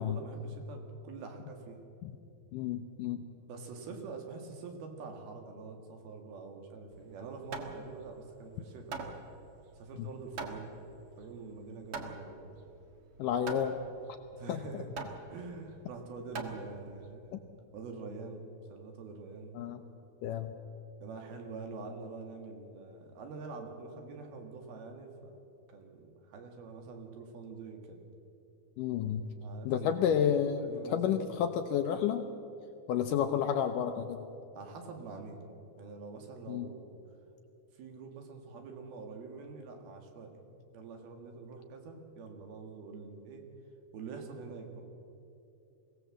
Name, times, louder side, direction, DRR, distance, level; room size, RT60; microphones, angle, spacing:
voice 1, 0.0-1.8 3.5-9.1 9.8-10.8 11.2-12.5 14.3-14.9 15.3-17.3 17.7-18.4 18.7-19.6 21.0-25.4 25.7-28.0 29.4-30.0 30.6-31.2 34.6-35.4 35.8-37.0 37.7-43.5 43.9-44.8, right 4 dB, 75° right, 4 dB, 3.8 m, -45 dB
voice 2, 2.5-3.2 10.0-10.1 13.2-13.8 14.5-14.6 17.3-17.4 19.5-19.8 20.2-20.5 28.8-29.3 29.6-32.2 32.9-34.2 36.5-36.7, left 9 dB, 75° left, 7 dB, 2.0 m, -31 dB
Hammer, 6.9-17.1, right 3 dB, 50° right, 1.8 m, -44 dB
22.0 x 17.0 x 7.5 m, 2.7 s
omnidirectional pair, 4.5 m